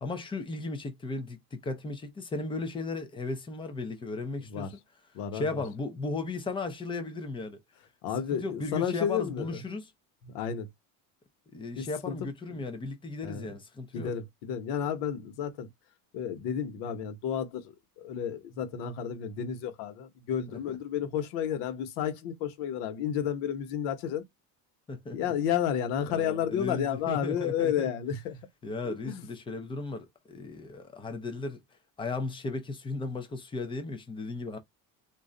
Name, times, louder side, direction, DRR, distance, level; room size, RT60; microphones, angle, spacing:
voice 1, 0.0-4.8 5.3-7.6 8.3-9.9 11.5-14.1 20.5-20.8 24.9-25.2 26.0-27.9 28.6-31.6 32.0-34.6, left 3 dB, 15° left, 0.3 m, -36 dB
voice 2, 4.4-4.7 5.1-5.6 8.0-9.6 10.2-10.7 11.8-12.2 13.2-13.5 13.9-15.7 16.1-24.2 25.1-28.5 28.8-29.3, left 9 dB, 90° left, 1.0 m, -32 dB
2.5 x 2.1 x 3.7 m
cardioid pair, 155°, 42 cm